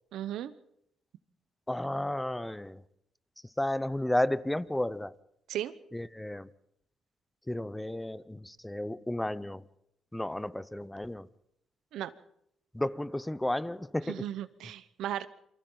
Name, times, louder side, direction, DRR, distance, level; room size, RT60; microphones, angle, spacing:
voice 1, 0.1-0.5 5.5-5.7 11.9-12.1 14.1-15.3, right 12 dB, 80° right, 0.9 m, -35 dB
voice 2, 1.7-2.8 3.6-5.1 5.9-6.5 7.5-9.6 10.1-11.3 12.7-14.2, left 1 dB, 10° left, 0.7 m, -32 dB
28.0 x 24.0 x 3.9 m
cardioid pair, 90°, 0 cm